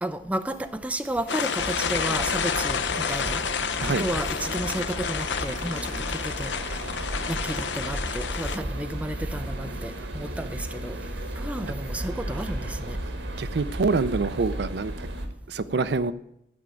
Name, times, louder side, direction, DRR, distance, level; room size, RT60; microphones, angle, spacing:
voice 1, 0.0-3.4 3.8-6.9 7.3-11.0 11.3-13.0, right 1 dB, 10° right, 0.6 m, -32 dB
sound 1, 1.3-8.6, left 6 dB, 75° left, 0.7 m, -29 dB
sound 2, 1.6-15.3, right 1 dB, 85° right, 1.6 m, -34 dB
voice 2, 13.4-15.1 15.5-16.1, right 4 dB, 60° right, 0.5 m, -26 dB
13.0 x 5.1 x 9.0 m
head